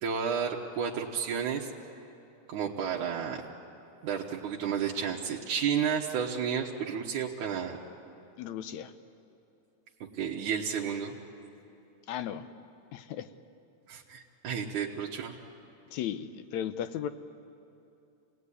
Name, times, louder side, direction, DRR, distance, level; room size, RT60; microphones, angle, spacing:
voice 1, 0.0-1.7 2.5-3.4 4.0-7.8 10.1-11.1 13.9-15.4, right 7 dB, 90° right, -3 dB, 2.7 m, -32 dB
voice 2, 8.4-8.9 12.1-12.5 12.9-13.3 15.9-17.1, left 10 dB, 75° left, 11 dB, 2.1 m, -35 dB
27.5 x 18.5 x 9.8 m, 2.8 s
omnidirectional pair, 3.4 m